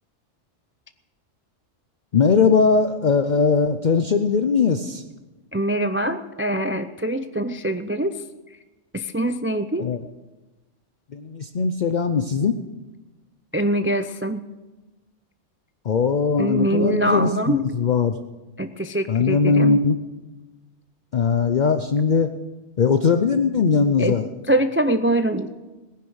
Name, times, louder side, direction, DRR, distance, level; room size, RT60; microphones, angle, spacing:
voice 1, 2.1-5.0 9.8-10.0 11.1-12.5 15.8-18.2 19.1-20.0 21.1-22.3 22.8-24.3, left 5 dB, 45° left, 8 dB, 0.7 m, -20 dB
voice 2, 5.5-8.2 8.9-9.9 13.5-14.4 16.4-17.6 18.6-19.8 24.0-24.2 24.5-25.5, right 1 dB, 20° right, 9 dB, 0.3 m, -23 dB
18.0 x 10.5 x 6.3 m, 1.1 s
omnidirectional pair, 1.2 m